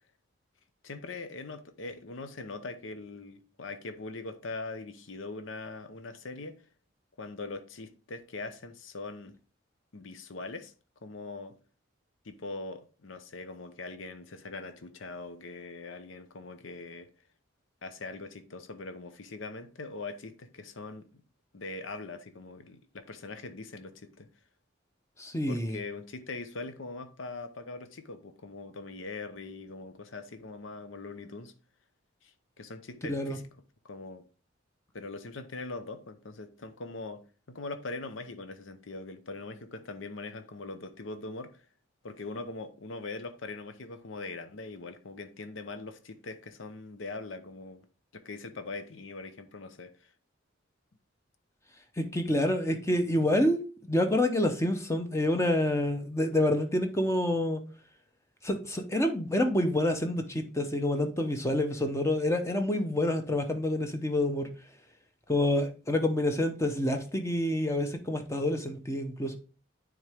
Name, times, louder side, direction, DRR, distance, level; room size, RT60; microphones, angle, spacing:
voice 1, 0.8-6.6 7.2-9.3 9.9-10.7 11.0-11.5 12.2-17.1 17.8-21.1 21.5-24.3 25.5-31.5 32.6-33.4 33.8-34.2 34.9-37.2 37.5-41.6 42.0-47.9 48.1-49.9, left 3 dB, 80° left, 0.8 m, -41 dB
voice 2, 25.2-25.8 33.1-33.4 52.0-53.6 53.9-57.6 58.4-64.5 65.3-69.4, left 1 dB, 15° left, 0.7 m, -27 dB
9.4 x 3.7 x 3.4 m
head